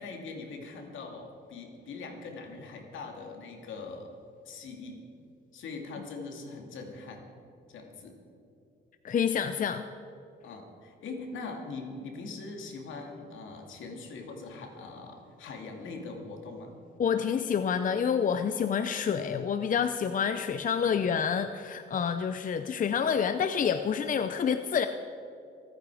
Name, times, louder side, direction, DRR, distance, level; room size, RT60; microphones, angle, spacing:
voice 1, 0.0-4.1 4.4-5.1 5.5-7.3 7.7-8.2 10.4-16.8, left 3 dB, 75° left, 2 dB, 2.7 m, -42 dB
voice 2, 9.0-9.9 17.0-24.9, left 7 dB, 40° left, 9 dB, 0.6 m, -28 dB
25.0 x 9.3 x 4.9 m, 2.6 s
cardioid pair, 90°, 20 cm